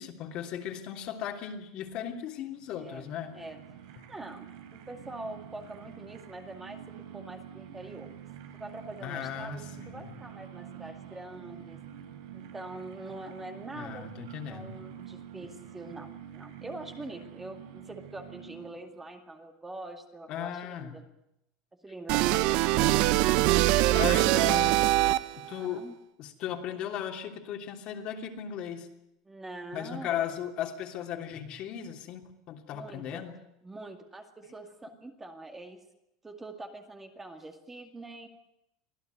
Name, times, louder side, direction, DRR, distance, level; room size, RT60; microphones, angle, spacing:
voice 1, 0.0-3.4 9.0-10.2 13.8-14.8 20.3-20.9 23.9-24.7 25.5-25.8 26.2-28.9 29.7-33.3, left 9 dB, 45° left, 4 dB, 3.0 m, -37 dB
sound 1, 2.4-19.1, right 10 dB, 75° right, 4.3 m, -47 dB
voice 2, 2.7-3.1 3.3-3.6 4.1-8.1 8.5-11.8 12.3-14.1 14.5-21.0 21.8-23.3 25.4-26.0 29.2-30.2 32.7-33.3 33.6-35.8 36.2-38.3, right 2 dB, 10° right, 5 dB, 2.2 m, -44 dB
sound 2, 22.1-25.5, right 16 dB, 55° right, 0.9 m, -23 dB
25.0 x 16.0 x 9.4 m, 0.84 s
supercardioid pair, 150°, 2 cm